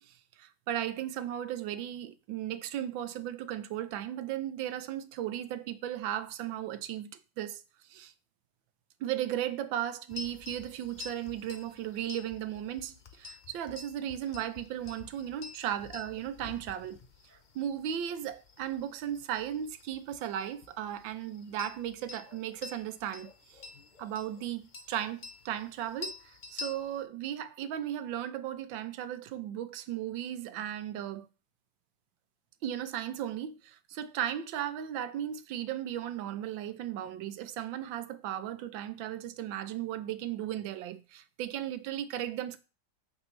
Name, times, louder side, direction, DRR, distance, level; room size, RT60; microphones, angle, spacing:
voice 1, 0.0-7.1 7.4-7.6 7.9-8.1 9.0-17.0 17.5-23.6 24.0-31.3 32.6-42.6, right 11 dB, 85° right, 1.5 m, -36 dB
sound 1, 10.1-27.0, left 3 dB, 70° left, 0.4 m, -49 dB
9.0 x 6.1 x 3.2 m
omnidirectional pair, 2.0 m